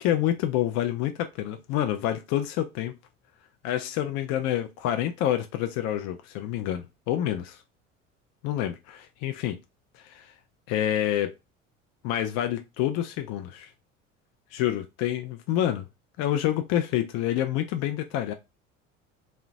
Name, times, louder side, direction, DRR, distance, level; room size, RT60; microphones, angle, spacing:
voice 1, 0.0-2.9 3.6-7.6 8.4-9.6 9.9-10.3 10.7-11.3 12.0-13.7 14.5-15.9 16.2-18.3, left 12 dB, 45° left, 0.4 m, -28 dB
2.7 x 2.1 x 2.5 m
figure-of-eight pair, 65°, 38 cm